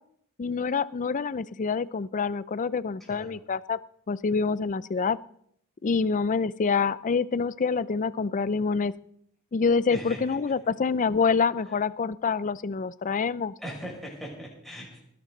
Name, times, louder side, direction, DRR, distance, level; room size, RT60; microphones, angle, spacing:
voice 1, 0.4-3.8 4.1-5.2 5.8-8.9 9.5-13.5, left 5 dB, 35° left, 18 dB, 0.4 m, -26 dB
voice 2, 3.0-3.4 9.9-10.4 11.7-11.8 13.6-15.0, equal, ahead, -4 dB, 6.1 m, -40 dB
20.0 x 11.5 x 4.0 m, 0.69 s
head